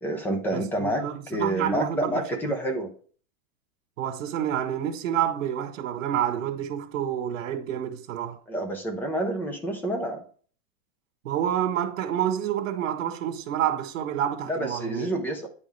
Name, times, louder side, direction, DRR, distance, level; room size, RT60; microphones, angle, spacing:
voice 1, 0.0-2.9 8.5-10.2 14.5-15.5, right 1 dB, 5° left, 0.4 m, -28 dB
voice 2, 0.5-2.6 4.0-8.4 11.2-15.1, right 10 dB, 70° right, 1.7 m, -28 dB
9.4 x 5.4 x 3.4 m
supercardioid pair, 160°, 39 cm